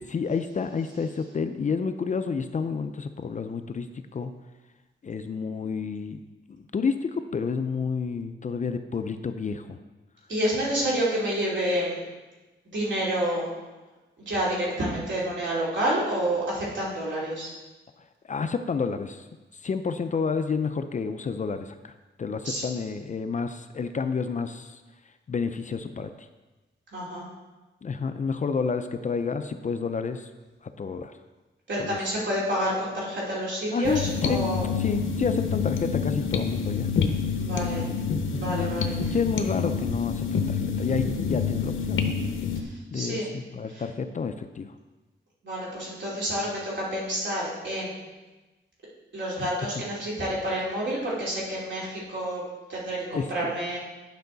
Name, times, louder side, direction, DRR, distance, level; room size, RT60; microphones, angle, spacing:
voice 1, 0.1-4.3 5.0-6.2 6.5-9.8 18.3-19.3 19.5-24.8 25.3-26.3 27.8-30.3 30.6-31.1 31.8-32.0 33.7-36.9 38.3-42.2 42.9-44.7 49.4-49.8 53.1-53.5, left 5 dB, 40° left, 9 dB, 0.4 m, -30 dB
voice 2, 10.3-12.0 12.7-13.5 14.3-17.5 22.4-22.6 26.9-27.3 31.7-34.6 37.4-37.8 38.3-38.9 42.9-43.3 45.4-48.0 49.1-52.4 52.7-53.0 53.3-53.8, right 1 dB, 65° right, -6 dB, 2.8 m, -28 dB
sound 1, 33.8-42.6, left 6 dB, 80° left, 0.7 m, -27 dB
10.5 x 5.5 x 3.9 m, 1.2 s
wide cardioid pair, 145°, 20 cm